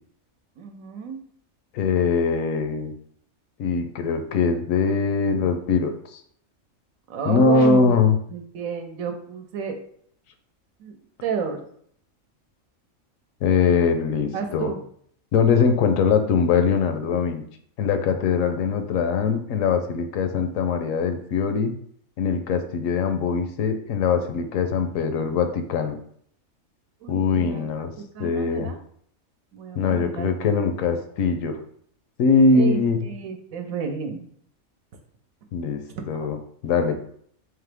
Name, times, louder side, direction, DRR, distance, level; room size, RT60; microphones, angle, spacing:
voice 1, 0.6-1.2 7.1-7.9 8.3-9.8 10.8-10.9 11.2-11.6 14.3-14.8 27.0-27.6 28.0-28.8 29.5-30.3 32.5-34.2, right 6 dB, 80° right, 5 dB, 1.1 m, -31 dB
voice 2, 1.7-2.9 3.6-6.2 7.2-8.2 13.4-14.7 15.3-17.4 17.8-21.7 22.2-26.0 27.1-27.9 28.2-28.7 29.8-31.6 32.2-33.0 35.5-35.8 36.1-37.0, left 5 dB, 75° left, 7 dB, 0.9 m, -22 dB
3.7 x 2.9 x 3.4 m, 0.63 s
omnidirectional pair, 1.4 m